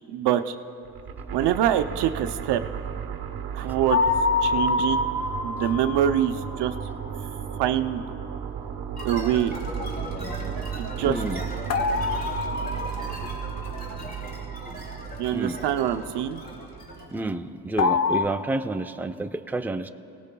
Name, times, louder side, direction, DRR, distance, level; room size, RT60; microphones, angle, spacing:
voice 1, 0.1-0.5 1.3-2.6 3.5-4.0 4.4-5.1 5.4-6.7 7.5-8.0 9.0-9.6 10.8-11.2 15.2-16.4, right 10 dB, 85° right, 8 dB, 0.7 m, -24 dB
sound 1, 0.8-17.0, right 8 dB, 65° right, 1.0 m, -35 dB
sound 2, 3.9-6.9 11.7-13.9 17.8-18.3, left 4 dB, 40° left, 0.8 m, -26 dB
sound 3, 9.0-17.2, left 1 dB, 25° left, 2.8 m, -39 dB
voice 2, 11.0-11.4 15.3-15.6 17.1-19.9, right 2 dB, 5° right, 7 dB, 0.6 m, -29 dB
26.0 x 18.5 x 2.3 m, 2.6 s
cardioid pair, 65°, 40 cm